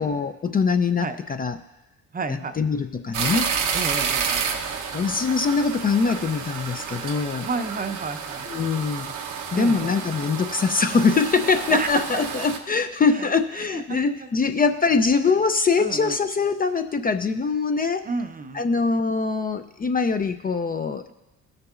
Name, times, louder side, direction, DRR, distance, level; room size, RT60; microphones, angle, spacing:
voice 1, 0.0-1.6 2.3-3.5 4.9-7.5 8.5-9.1 9.5-18.1 18.5-21.0, left 4 dB, 30° left, 8 dB, 0.4 m, -23 dB
voice 2, 2.1-2.5 3.7-4.8 7.4-8.4 9.5-10.1 11.7-12.0 12.7-14.4 15.8-16.2 18.0-18.7, right 4 dB, 30° right, 8 dB, 0.7 m, -32 dB
sound 1, 3.1-12.6, right 6 dB, 85° right, 1.0 m, -30 dB
19.5 x 6.5 x 2.4 m, 1.0 s
cardioid pair, 90°, 30 cm